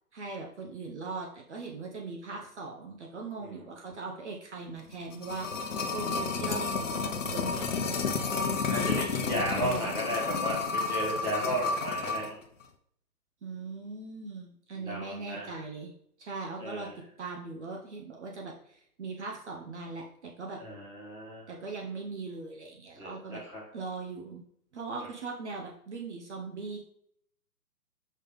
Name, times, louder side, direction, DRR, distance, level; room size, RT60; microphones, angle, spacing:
voice 1, 0.1-5.5 5.9-8.0 9.5-9.9 13.4-15.9 16.2-16.9 17.2-20.6 21.5-23.4 23.7-24.4 24.7-26.8, right 4 dB, 50° right, 0 dB, 1.1 m, -40 dB
sound 1, 4.9-12.3 12.6-12.7, left 4 dB, 55° left, 0.8 m, -31 dB
voice 2, 8.7-12.4 14.8-15.5 16.6-17.0 20.6-21.4 23.0-23.6, right 1 dB, 5° right, -6 dB, 1.6 m, -34 dB
5.4 x 3.4 x 5.4 m, 0.68 s
figure-of-eight pair, 140°, 46 cm